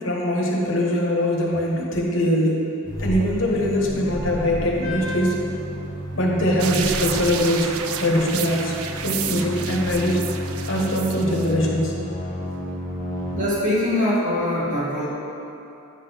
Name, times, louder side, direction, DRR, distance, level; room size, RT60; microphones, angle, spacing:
voice 1, 0.0-2.6 3.0-5.4 6.1-7.7 8.0-8.7 9.0-10.3 10.7-11.9, equal, 65° left, -1 dB, 1.1 m, -22 dB
sound 1, 2.8-13.4, equal, 40° left, 1.1 m, -31 dB
sound 2, 6.6-11.5, right 8 dB, 90° right, 0.4 m, -31 dB
voice 2, 13.3-15.1, left 1 dB, 35° right, -7 dB, 1.8 m, -23 dB
9.0 x 3.8 x 5.7 m, 2.8 s
head